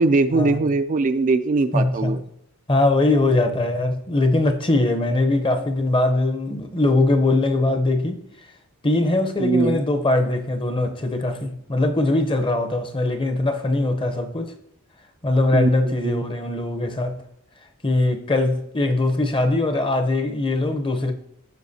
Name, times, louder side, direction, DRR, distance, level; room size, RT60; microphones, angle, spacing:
voice 1, 0.0-2.2 9.4-9.8 15.5-15.7 16.0-16.2, right 3 dB, 35° right, 0.4 m, -20 dB
voice 2, 1.7-2.2 2.7-8.5 8.8-14.5 15.2-17.2 17.8-21.1, left 2 dB, 25° left, 0.7 m, -21 dB
15.0 x 5.0 x 2.8 m
head